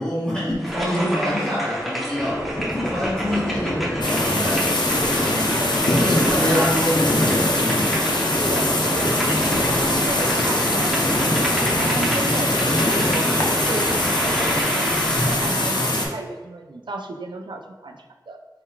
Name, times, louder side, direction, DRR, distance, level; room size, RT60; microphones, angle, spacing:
voice 1, 0.0-2.4 2.7-4.7 5.2-5.6 5.9-7.9, equal, 15° left, -11 dB, 1.4 m, -26 dB
sound 1, 0.6-15.7, equal, ahead, 0.9 m, -30 dB
sound 2, 2.1-14.6, left 1 dB, 30° left, 0.7 m, -29 dB
sound 3, 4.0-16.1, left 1 dB, 70° left, 0.7 m, -22 dB
voice 2, 6.2-6.7 8.4-9.2 9.4-13.3 13.7-18.4, right 3 dB, 80° right, 4 dB, 0.4 m, -34 dB
4.3 x 3.7 x 2.3 m, 1.3 s
wide cardioid pair, 45°, 8 cm